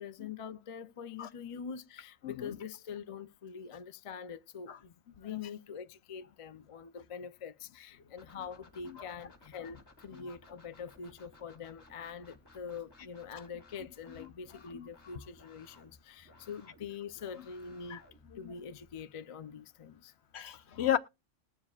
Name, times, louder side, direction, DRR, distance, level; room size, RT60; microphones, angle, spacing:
voice 1, 0.0-18.0 18.3-20.1, left 6 dB, 45° left, 0.4 m, -44 dB
voice 2, 2.2-2.6 4.7-4.8 8.9-9.0 13.3-13.4 14.7-14.9 17.9-18.0 18.4-18.5 20.3-21.0, left 11 dB, 65° left, 0.9 m, -33 dB
sound 1, 8.2-19.0, left 2 dB, 20° left, 2.7 m, -60 dB
20.0 x 7.3 x 2.3 m
omnidirectional pair, 1.3 m